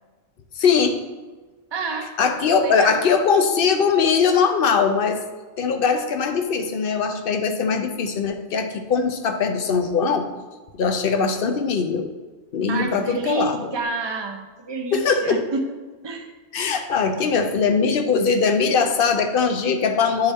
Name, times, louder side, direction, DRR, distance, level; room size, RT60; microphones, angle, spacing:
voice 1, 0.6-1.0 2.2-5.2 5.6-10.3 10.7-12.1 12.5-13.7 14.9-15.4 16.5-20.3, left 5 dB, 55° left, 7 dB, 0.8 m, -21 dB
voice 2, 1.7-2.2 2.6-3.1 12.7-15.6 16.0-16.3, right 3 dB, 30° right, 4 dB, 0.5 m, -29 dB
9.1 x 4.2 x 3.5 m, 1.3 s
omnidirectional pair, 1.2 m